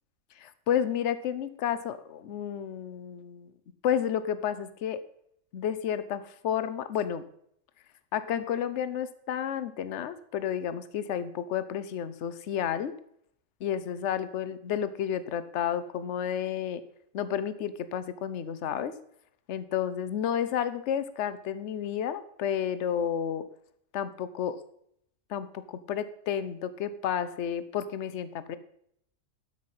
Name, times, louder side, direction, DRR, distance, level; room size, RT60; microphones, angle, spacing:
voice 1, 0.4-3.5 3.8-5.0 5.5-7.2 8.1-12.9 13.6-16.8 17.1-18.9 19.5-23.5 23.9-24.6 25.3-28.6, left 9 dB, 60° left, 13 dB, 1.0 m, -31 dB
13.0 x 5.8 x 5.5 m, 0.70 s
omnidirectional pair, 1.4 m